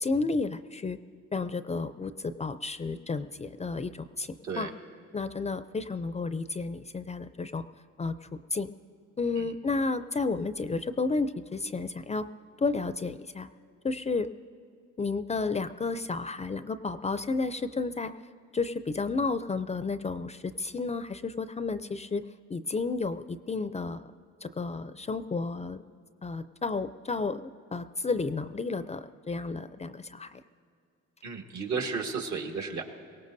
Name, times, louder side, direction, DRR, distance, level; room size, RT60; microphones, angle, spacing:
voice 1, 0.0-1.0 1.3-4.7 5.1-7.6 8.0-8.7 9.2-12.3 12.6-13.5 13.8-14.3 15.0-18.1 18.5-22.2 22.5-24.1 24.4-25.8 26.2-27.4 27.7-30.4, left 3 dB, 20° left, 12 dB, 0.4 m, -32 dB
voice 2, 31.2-32.8, right 5 dB, 70° right, 3 dB, 1.6 m, -33 dB
23.0 x 17.5 x 2.7 m, 2.5 s
cardioid pair, 90°, 30 cm